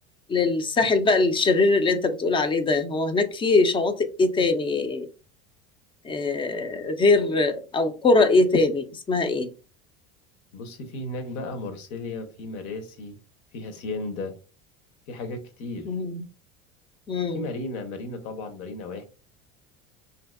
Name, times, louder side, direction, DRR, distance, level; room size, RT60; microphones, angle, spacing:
voice 1, 0.3-5.1 6.0-9.5 15.9-16.2 17.1-17.4, left 3 dB, 20° left, 0.4 m, -22 dB
voice 2, 10.5-13.2 13.5-14.4 15.1-15.9 17.3-19.0, left 2 dB, 65° left, 0.9 m, -34 dB
2.9 x 2.6 x 2.3 m
supercardioid pair, 115°, 30 cm